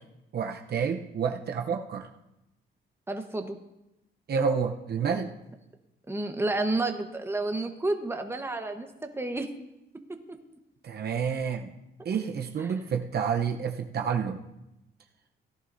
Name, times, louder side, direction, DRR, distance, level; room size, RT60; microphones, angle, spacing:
voice 1, 0.3-2.1 4.3-5.3 10.8-11.7 12.0-14.4, right 6 dB, 55° right, 3 dB, 0.9 m, -29 dB
voice 2, 3.1-3.6 6.1-9.5 10.3-10.4 12.0-12.1, right 2 dB, 10° right, 5 dB, 1.2 m, -30 dB
17.0 x 11.0 x 2.7 m, 0.92 s
cardioid pair, 90°, 20 cm